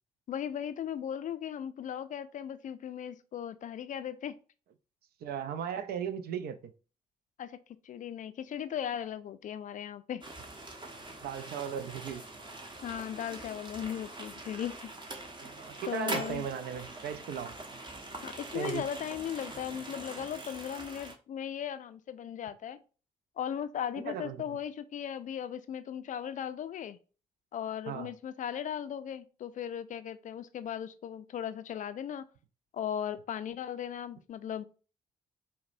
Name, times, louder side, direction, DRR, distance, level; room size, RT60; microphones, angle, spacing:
voice 1, 0.3-4.4 7.4-7.6 7.8-10.2 12.8-14.8 15.9-16.4 18.2-22.8 23.4-27.0 27.5-32.2 32.7-34.6, left 9 dB, 45° left, 0.4 m, -37 dB
voice 2, 5.2-6.7 11.2-12.2 15.4-17.6 18.5-18.8 24.1-24.6 27.9-28.1, right 8 dB, 55° right, 0.4 m, -37 dB
sound 1, 10.2-21.1, right 2 dB, 25° right, 0.8 m, -43 dB
4.7 x 2.1 x 2.5 m
figure-of-eight pair, 40°, 19 cm